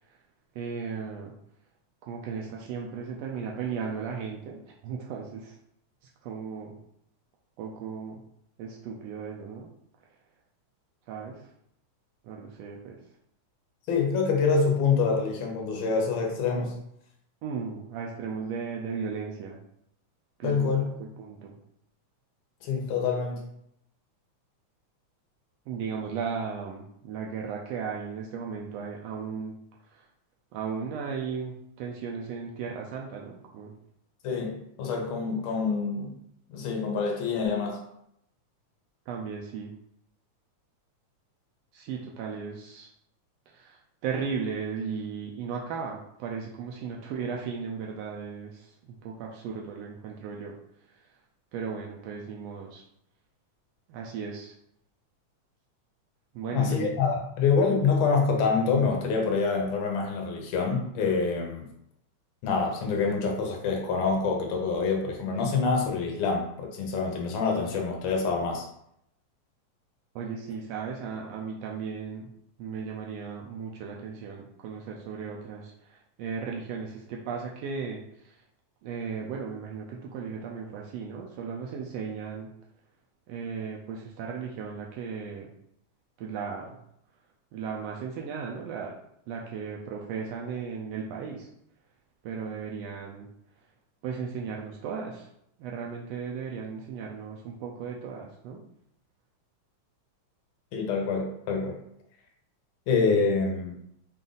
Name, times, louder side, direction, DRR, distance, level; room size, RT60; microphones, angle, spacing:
voice 1, 0.6-1.3 2.0-5.6 6.2-6.7 7.6-8.2 8.6-9.7 11.1-11.5 12.2-13.0 17.4-19.6 20.4-21.5 25.7-29.5 29.9-30.0 30.5-33.7 39.1-39.7 41.7-42.9 43.5-48.7 49.0-50.5 51.5-52.8 53.9-54.5 56.3-57.0 70.1-72.3 72.6-78.4 78.8-82.5 83.3-85.5 86.2-86.7 87.5-88.9 89.3-91.5 92.2-93.3 94.0-95.3 95.6-98.6, right 6 dB, 90° right, -1 dB, 1.4 m, -36 dB
voice 2, 13.9-16.7 20.4-20.9 22.6-23.4 34.2-36.1 36.5-37.8 56.5-61.7 62.4-68.7 100.7-101.8 102.9-103.7, left 5 dB, 70° left, 1 dB, 1.8 m, -26 dB
5.4 x 2.5 x 3.8 m, 0.76 s
omnidirectional pair, 3.4 m